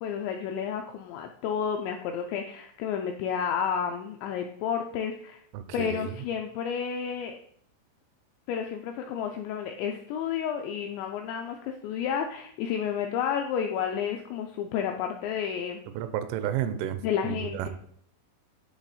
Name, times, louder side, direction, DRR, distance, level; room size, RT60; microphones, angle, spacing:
voice 1, 0.0-5.4 5.7-7.4 8.5-15.8 17.0-17.7, left 8 dB, 85° left, 3 dB, 2.5 m, -31 dB
voice 2, 5.5-6.2 16.0-17.0 17.2-17.7, right 11 dB, 85° right, 11 dB, 3.1 m, -31 dB
9.9 x 3.4 x 4.0 m, 0.63 s
omnidirectional pair, 5.6 m